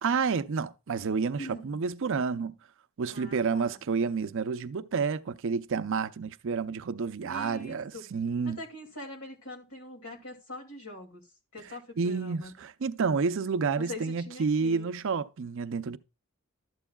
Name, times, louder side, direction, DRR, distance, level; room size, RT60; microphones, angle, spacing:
voice 1, 0.0-2.5 3.0-8.6 12.0-16.0, right 5 dB, 65° right, 0.5 m, -30 dB
voice 2, 1.4-1.8 3.1-3.8 7.2-8.0 8.4-11.2 11.5-12.5 13.8-14.9, left 1 dB, 85° left, 2.4 m, -43 dB
12.0 x 7.9 x 2.3 m
head